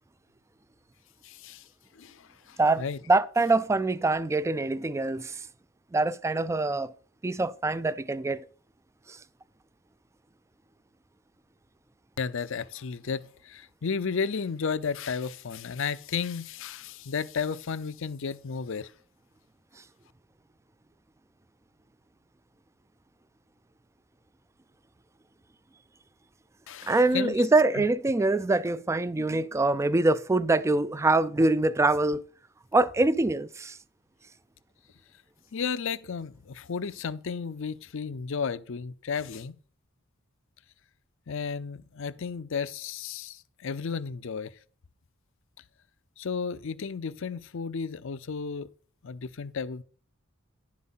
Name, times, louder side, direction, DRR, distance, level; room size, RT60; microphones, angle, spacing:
voice 1, 1.2-1.6 2.0-3.0 12.2-18.9 26.7-27.4 27.8-27.9 29.2-29.4 35.5-39.5 41.3-44.5 46.2-48.7 49.0-49.8, left 5 dB, 65° left, 0.6 m, -33 dB
voice 2, 2.6-5.5 5.9-6.9 7.2-8.4 9.1-9.2 26.9-32.2 32.7-33.8, right 2 dB, 15° right, 0.3 m, -24 dB
10.5 x 7.4 x 4.1 m
head